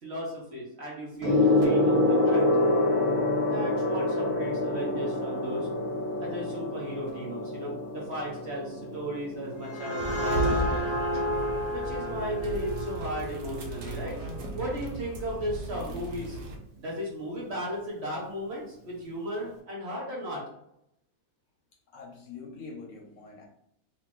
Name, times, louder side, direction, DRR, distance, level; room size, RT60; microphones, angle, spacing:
voice 1, 0.0-2.5 3.4-5.7 6.2-10.9 11.7-14.2 14.5-16.4 16.8-20.4, equal, 50° right, -3 dB, 1.2 m, -35 dB
Gong, 1.2-11.0 11.9-12.2, left 2 dB, 70° right, 1.7 m, -27 dB
sound 1, 9.4-14.9, equal, 35° left, 1.0 m, -32 dB
sound 2, 10.0-16.6, right 2 dB, 90° right, 1.2 m, -36 dB
voice 2, 21.9-23.4, left 4 dB, 65° left, 0 dB, 1.0 m, -44 dB
3.0 x 2.8 x 3.6 m, 0.78 s
omnidirectional pair, 1.5 m